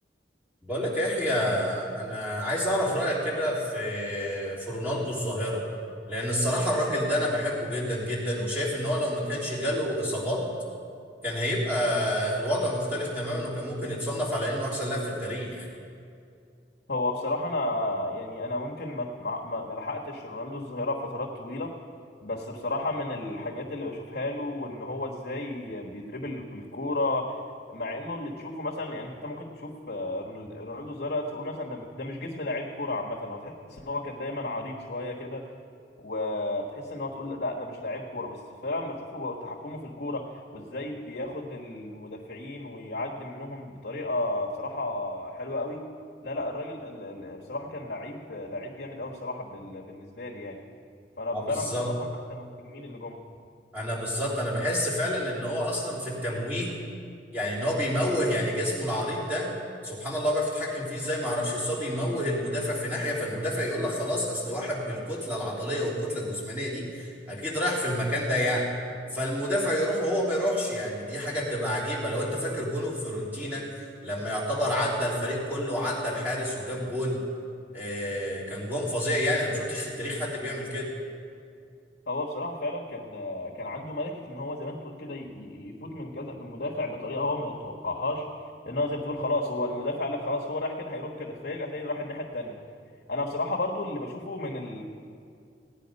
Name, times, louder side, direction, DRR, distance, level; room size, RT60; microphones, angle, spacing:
voice 1, 0.6-5.6 6.1-10.4 11.2-15.7 51.3-51.9 53.7-56.7 57.3-59.5 59.8-68.7 69.1-77.2 77.7-80.9, equal, 10° right, -6 dB, 3.4 m, -29 dB
voice 2, 16.9-21.7 22.2-27.4 27.7-35.5 36.0-45.8 46.2-50.6 51.2-53.2 82.1-88.3 88.6-92.6 93.1-94.8, left 2 dB, 65° left, -4 dB, 1.4 m, -33 dB
17.0 x 9.7 x 5.3 m, 2.3 s
head